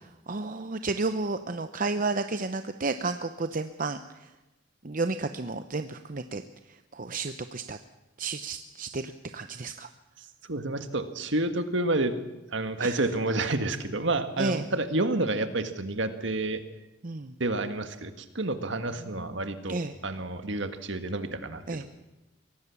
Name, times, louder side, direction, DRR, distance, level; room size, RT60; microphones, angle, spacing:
voice 1, 0.3-4.3 4.8-6.4 6.7-7.8 8.2-9.9 12.8-13.0 14.4-14.7 17.0-17.3 19.2-19.3 19.7-19.9 21.7-21.8, right 3 dB, 45° right, 9 dB, 0.7 m, -32 dB
voice 2, 10.5-12.2 12.5-16.6 17.4-21.9, right 2 dB, 65° right, 9 dB, 1.8 m, -29 dB
23.0 x 18.0 x 7.2 m, 0.99 s
head